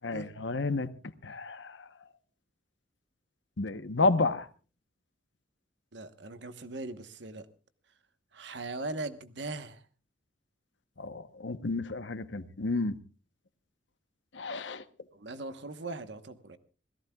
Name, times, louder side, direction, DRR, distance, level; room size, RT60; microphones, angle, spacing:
voice 1, 0.0-0.9 1.2-1.9 3.6-4.5 11.0-12.9 14.3-14.8, left 3 dB, 70° left, 1.0 m, -31 dB
voice 2, 5.9-7.5 8.3-9.8 15.1-16.6, right 2 dB, 65° right, 1.2 m, -39 dB
27.0 x 17.0 x 2.3 m
head